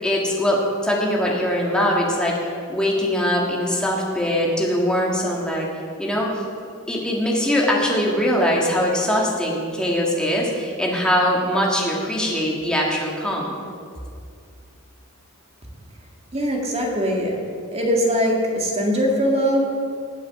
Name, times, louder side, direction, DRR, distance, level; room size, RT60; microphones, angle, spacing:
voice 1, 0.0-2.4 2.7-5.7 6.0-6.4 6.9-13.6, equal, 5° left, -3 dB, 1.9 m, -22 dB
voice 2, 16.3-17.3 17.7-19.6, equal, 30° right, 0 dB, 1.9 m, -21 dB
19.0 x 7.5 x 4.8 m, 2.3 s
head